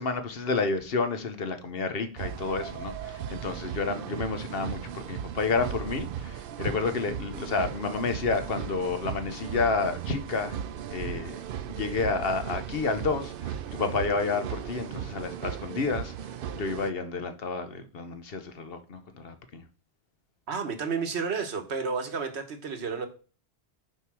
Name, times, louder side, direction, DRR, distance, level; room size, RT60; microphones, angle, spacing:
voice 1, 0.0-10.6 10.9-11.4 11.7-16.1 16.5-19.6, left 4 dB, 65° left, 1.1 m, -30 dB
sound 1, 2.2-16.9, right 9 dB, 65° right, 0.7 m, -37 dB
voice 2, 20.5-23.1, right 5 dB, 85° right, 1.3 m, -31 dB
6.5 x 4.8 x 6.1 m
omnidirectional pair, 1.1 m